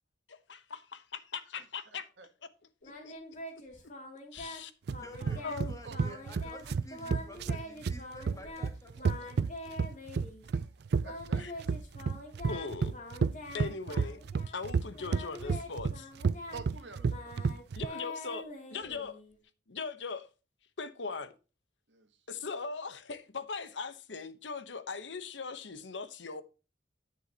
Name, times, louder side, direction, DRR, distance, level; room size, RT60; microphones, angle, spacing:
voice 1, 0.3-2.1 2.8-3.2 4.3-4.7 5.2-5.7 11.4-11.5 12.4-12.9 13.5-16.1 17.8-19.2 19.7-20.3 20.8-21.3 22.3-26.4, left 4 dB, 75° left, 0.9 m, -40 dB
voice 2, 1.9-2.3 5.3-5.4 5.8-6.2 10.5-11.7 16.5-17.3 17.8-18.0 21.9-22.1, right 4 dB, 75° right, 1.7 m, -49 dB
Singing, 2.8-4.6 4.9-5.6 5.9-8.7 9.0-10.4 11.0-14.6 14.9-19.4, left 1 dB, 45° left, 2.6 m, -45 dB
sound 1, 4.9-17.9, right 5 dB, 60° right, 0.4 m, -31 dB
voice 3, 5.0-9.8, left 1 dB, 20° left, 2.0 m, -51 dB
9.9 x 8.0 x 2.8 m
head